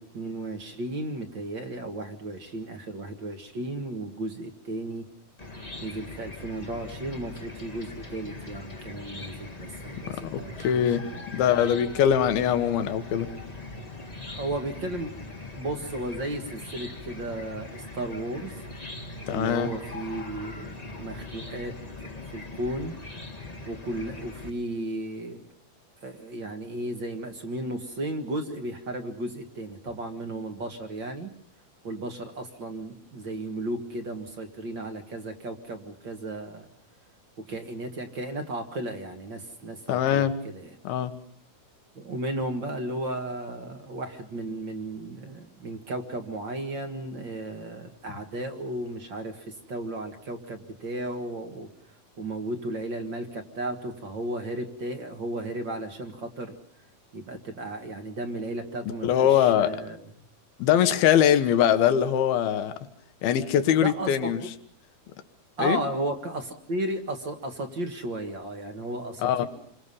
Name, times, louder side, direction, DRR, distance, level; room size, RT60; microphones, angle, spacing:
voice 1, 0.0-5.0 5.8-11.3 14.4-15.1 15.5-18.5 19.3-21.7 22.0-22.9 23.7-25.5 26.0-31.3 31.8-36.7 37.4-40.7 41.9-51.7 52.2-56.5 57.1-60.0 63.8-64.3 65.6-69.4, right 1 dB, 45° right, 6 dB, 1.7 m, -34 dB
Chicken rooster / Cricket, 5.4-24.5, left 2 dB, 25° left, 0.8 m, -41 dB
voice 2, 10.0-11.1 11.3-13.3 19.3-19.7 39.9-40.3 40.8-41.2 59.0-59.7 60.6-62.7 63.2-64.4 65.6-65.8 69.2-69.5, left 9 dB, 80° left, 10 dB, 3.2 m, -22 dB
28.0 x 24.5 x 5.5 m, 0.63 s
omnidirectional pair, 4.4 m